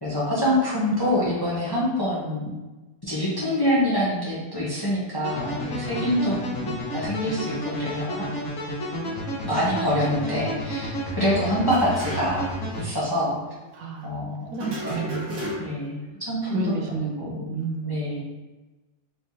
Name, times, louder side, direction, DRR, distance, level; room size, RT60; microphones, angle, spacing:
voice 1, 0.0-2.6 3.0-8.3 9.0-9.1 9.4-12.5 12.8-13.4 14.0-15.3 15.6-16.7 17.2-17.5 17.8-18.2, equal, 15° left, -8 dB, 0.9 m, -26 dB
sound 1, 5.2-12.9, equal, 65° left, 1.7 m, -31 dB
sound 2, 11.6-12.6 12.8-12.9 14.6-15.9, equal, 60° right, 1.7 m, -34 dB
voice 2, 13.7-15.4 16.5-18.2, right 4 dB, 80° right, 1 dB, 1.2 m, -32 dB
4.5 x 3.3 x 2.8 m, 1.1 s
omnidirectional pair, 1.7 m